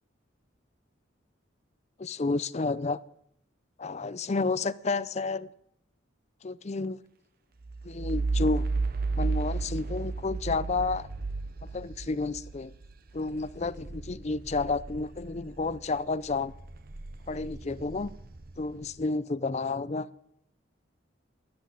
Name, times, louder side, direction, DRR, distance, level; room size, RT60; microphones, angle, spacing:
voice 1, 2.0-3.0 3.8-5.5 6.4-7.0 7.8-8.7 9.2-11.1 11.7-12.7 13.1-16.5 17.3-18.1 18.6-20.1, left 3 dB, 35° left, 16 dB, 0.5 m, -30 dB
sound 1, 7.6-15.9 16.2-18.8, right 3 dB, 50° right, 0.9 m, -34 dB
13.0 x 10.5 x 8.8 m, 0.78 s
head